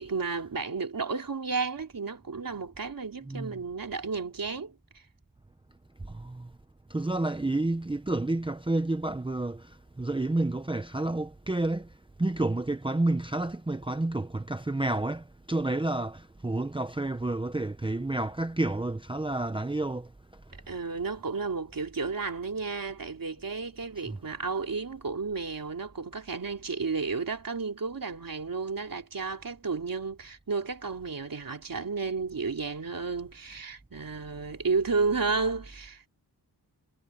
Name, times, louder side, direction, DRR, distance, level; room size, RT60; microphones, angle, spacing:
voice 1, 0.0-5.0 20.7-36.1, right 4 dB, 55° right, 3.1 m, -32 dB
voice 2, 3.3-3.6 6.1-6.5 6.9-11.9 12.2-20.1 24.1-24.2, right 2 dB, 10° right, 0.7 m, -30 dB
wide cardioid pair, 115°, 41 cm